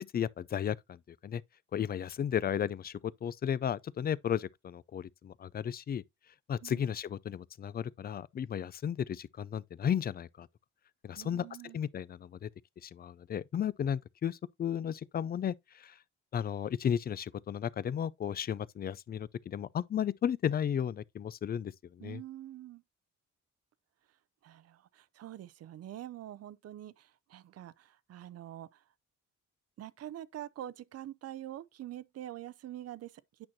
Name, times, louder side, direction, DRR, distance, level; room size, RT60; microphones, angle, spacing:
voice 1, 0.1-1.0 1.2-1.4 1.7-6.0 6.5-10.5 11.0-11.5 11.7-12.5 12.8-15.9 16.3-22.2, left 9 dB, 30° left, 0.4 m, -34 dB
voice 2, 11.2-11.8 22.0-22.8 24.4-28.8 29.8-33.5, right 12 dB, 55° right, 0.5 m, -45 dB
8.7 x 6.0 x 2.7 m
cardioid pair, 90°, 30 cm